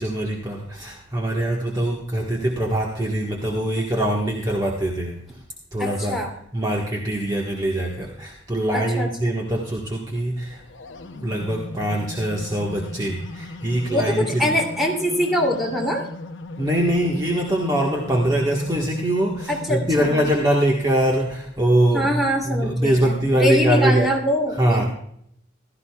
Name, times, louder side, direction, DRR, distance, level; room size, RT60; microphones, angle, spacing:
voice 1, 0.0-5.4 5.7-6.2 6.5-10.6 11.2-14.5 16.6-24.1 24.6-24.8, right 1 dB, 20° right, -2 dB, 1.4 m, -23 dB
voice 2, 5.8-6.3 8.7-9.3 13.9-16.1 19.5-20.3 21.9-24.9, equal, ahead, -1 dB, 2.8 m, -24 dB
sound 1, 10.4-20.1, left 2 dB, 70° left, 0.8 m, -37 dB
16.5 x 13.0 x 2.4 m, 0.70 s
head